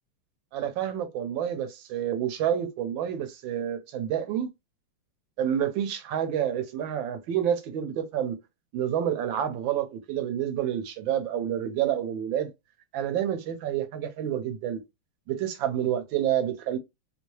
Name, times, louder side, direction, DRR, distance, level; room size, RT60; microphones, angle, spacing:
voice 1, 0.5-4.5 5.4-8.4 8.7-12.5 12.9-14.8 15.3-16.8, right 10 dB, 75° right, 1.3 m, -28 dB
3.3 x 2.6 x 3.0 m
omnidirectional pair, 2.3 m